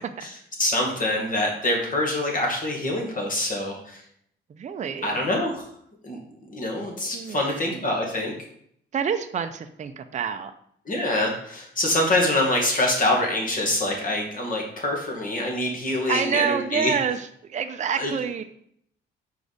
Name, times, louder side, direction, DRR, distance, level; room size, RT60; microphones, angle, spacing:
voice 1, 0.6-4.0 5.0-5.7 6.0-6.2 6.5-8.3 10.9-16.9 17.9-18.1, left 1 dB, 45° left, 0 dB, 1.9 m, -25 dB
voice 2, 4.5-5.2 7.1-7.9 8.9-10.5 16.1-18.4, right 7 dB, 35° right, 8 dB, 0.5 m, -28 dB
4.8 x 4.8 x 4.0 m, 0.68 s
cardioid pair, 90°, 20 cm